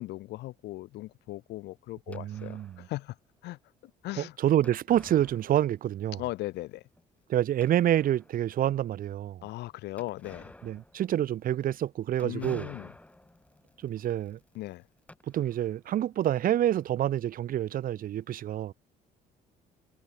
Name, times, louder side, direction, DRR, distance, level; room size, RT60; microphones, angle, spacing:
voice 1, 0.0-3.2 3.4-4.4 6.2-6.9 9.4-10.5 12.2-12.9 14.5-14.9, left 17 dB, 80° left, 3.6 m, -38 dB
sound 1, 2.1-2.9 4.6-6.0 6.3-6.4 7.0-7.1 7.6-8.5 10.0-15.9, left 1 dB, 10° left, 5.1 m, -52 dB
voice 2, 2.1-2.8 4.2-6.2 7.3-9.4 10.6-12.7 13.8-14.4 15.3-18.7, right 11 dB, 55° right, 1.2 m, -27 dB
cardioid pair, 110°, 17 cm